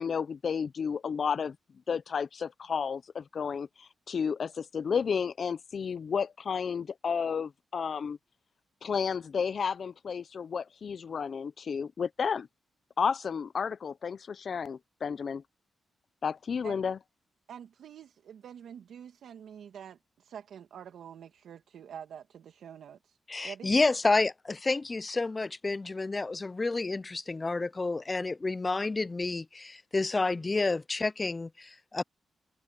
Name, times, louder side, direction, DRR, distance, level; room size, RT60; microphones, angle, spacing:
voice 1, 0.0-1.6 1.9-8.2 8.8-12.5 13.0-15.4 16.2-17.0, left 6 dB, 60° left, 0.7 m, -32 dB
voice 2, 17.5-23.2 23.4-23.8, right 8 dB, 80° right, 2.1 m, -47 dB
voice 3, 23.3-32.0, left 3 dB, 30° left, 0.3 m, -29 dB
cardioid pair, 60°, 0 cm